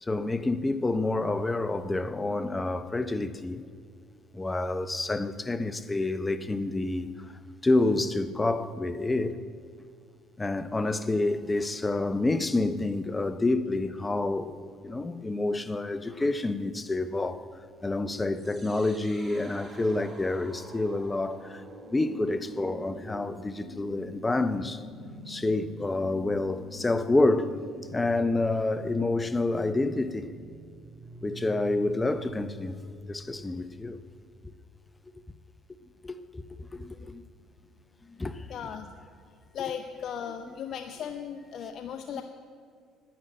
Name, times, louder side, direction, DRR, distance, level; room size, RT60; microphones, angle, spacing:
voice 1, 0.0-3.6 4.3-7.1 7.6-9.4 10.4-17.5 17.8-21.6 21.9-24.8 25.3-30.3 31.2-32.8 33.1-34.0 36.0-37.2 38.2-38.5 42.1-42.2, left 2 dB, 20° left, 0.7 m, -28 dB
sound 1, 18.3-34.3, equal, 25° right, 2.1 m, -46 dB
voice 2, 38.5-38.9 39.5-42.2, left 8 dB, 60° left, 0.6 m, -36 dB
10.0 x 10.0 x 7.7 m
supercardioid pair, 85°, 0 cm